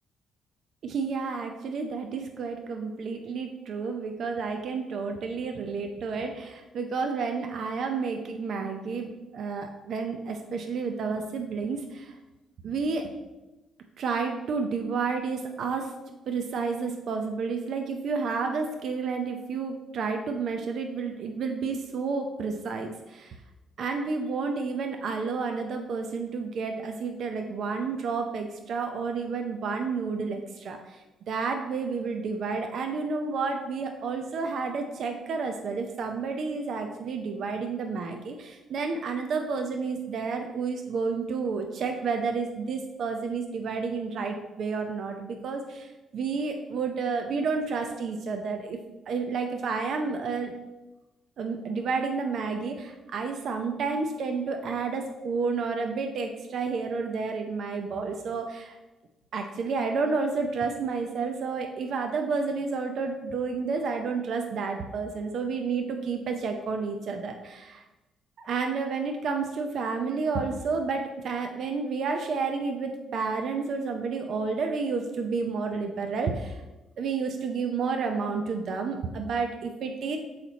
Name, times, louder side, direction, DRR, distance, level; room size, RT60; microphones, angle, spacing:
voice 1, 0.8-12.2 12.6-13.1 14.0-15.9 16.3-23.3 23.8-48.8 49.1-50.5 51.4-58.7 59.3-67.8 68.4-76.6 77.0-80.2, right 4 dB, 65° right, 4 dB, 0.6 m, -30 dB
6.5 x 4.3 x 4.0 m, 1.0 s
cardioid pair, 90°, 0 cm